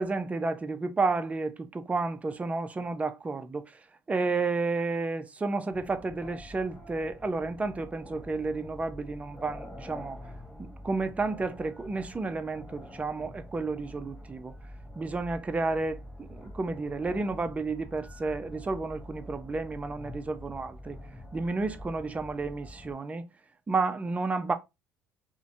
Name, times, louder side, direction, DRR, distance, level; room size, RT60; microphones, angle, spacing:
voice 1, 0.0-3.8 4.1-10.2 10.6-14.5 15.0-21.0 21.3-23.3 23.7-24.5, right 3 dB, 20° right, 0.4 m, -31 dB
sound 1, 5.7-22.9, left 1 dB, 10° left, 0.8 m, -46 dB
2.5 x 2.1 x 2.5 m
supercardioid pair, 75°, 7 cm